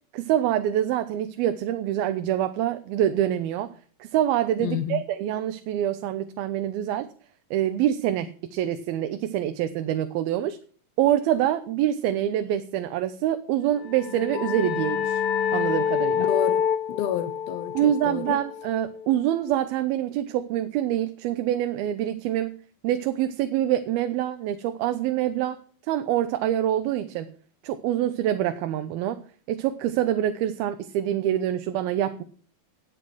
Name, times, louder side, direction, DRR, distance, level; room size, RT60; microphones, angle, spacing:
voice 1, 0.1-3.7 4.0-7.1 7.5-10.6 11.0-15.2 15.5-16.3 17.7-22.6 22.8-27.3 27.6-29.2 29.5-32.2, right 11 dB, 80° right, 2.8 m, -25 dB
voice 2, 4.6-5.0 16.2-16.6 16.9-18.4, left 9 dB, 80° left, 2.9 m, -29 dB
sound 1, 13.7-19.1, left 8 dB, 60° left, 1.7 m, -27 dB
13.0 x 9.4 x 6.2 m
omnidirectional pair, 4.3 m